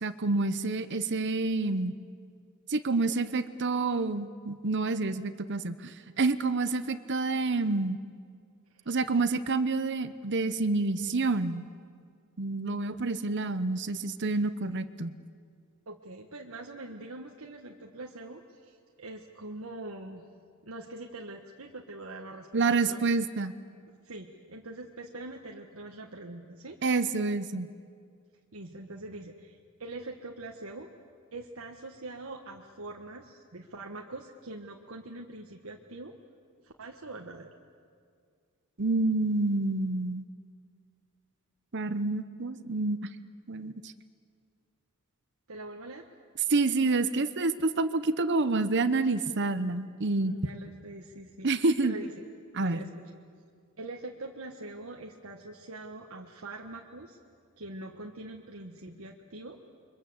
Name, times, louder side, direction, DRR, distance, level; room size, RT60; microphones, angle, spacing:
voice 1, 0.0-1.9 2.7-8.0 8.9-11.6 12.4-15.1 22.5-23.5 26.8-27.7 38.8-40.2 41.7-43.1 43.5-43.9 46.5-50.4 51.4-51.9 52.5-52.8, right 3 dB, 55° right, 12 dB, 0.9 m, -28 dB
voice 2, 15.9-20.2 20.6-23.0 24.0-26.8 28.5-30.9 31.3-36.1 36.6-37.5 45.5-46.1 50.2-51.5 51.8-52.1 52.6-53.0 53.8-57.2 57.6-59.6, right 2 dB, 80° right, 1 dB, 1.5 m, -43 dB
29.5 x 24.0 x 8.0 m, 2.2 s
head